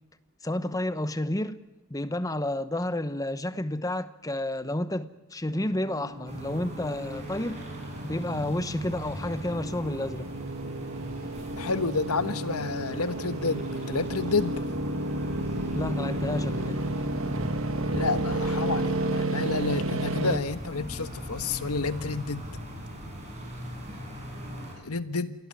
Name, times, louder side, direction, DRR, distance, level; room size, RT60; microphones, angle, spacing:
voice 1, 0.4-1.6 1.9-7.6 8.0-10.3 15.7-16.8, left 1 dB, 15° left, 0.9 m, -30 dB
sound 1, 5.5-20.4, right 2 dB, 65° right, 1.3 m, -32 dB
sound 2, 6.3-24.7, equal, 30° right, 6.7 m, -39 dB
voice 2, 11.5-14.6 17.9-22.5 24.8-25.3, left 4 dB, 85° left, 1.4 m, -29 dB
28.0 x 17.5 x 9.7 m
head